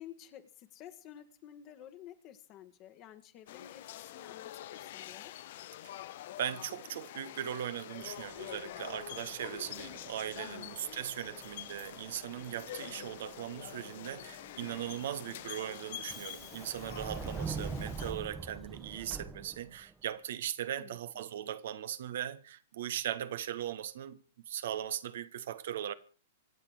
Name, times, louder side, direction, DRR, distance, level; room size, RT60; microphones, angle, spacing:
voice 1, 0.0-3.8 4.1-5.3 10.4-10.7 20.7-21.0, left 11 dB, 35° left, 1.7 m, -52 dB
sound 1, 3.5-18.1, left 13 dB, 50° left, 0.8 m, -46 dB
voice 2, 6.4-25.9, right 11 dB, 55° right, 1.2 m, -39 dB
Subway metro underground, 8.0-19.9, right 4 dB, 15° right, 1.3 m, -46 dB
25.5 x 8.7 x 4.9 m
figure-of-eight pair, 105°, 0 cm